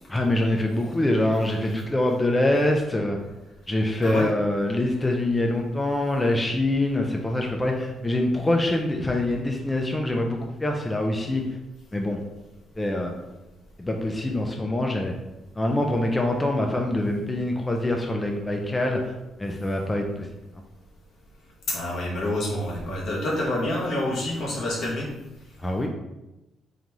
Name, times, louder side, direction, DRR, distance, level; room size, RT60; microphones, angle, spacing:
voice 1, 0.1-3.2 3.7-11.4 11.9-12.2 12.8-13.3 13.8-15.1 15.5-19.1 19.4-20.3 25.6-25.9, left 1 dB, 15° left, 1 dB, 0.5 m, -24 dB
voice 2, 21.7-25.1, left 1 dB, 70° left, -4 dB, 1.3 m, -27 dB
3.9 x 3.3 x 3.0 m, 0.99 s
cardioid pair, 90°, 0 cm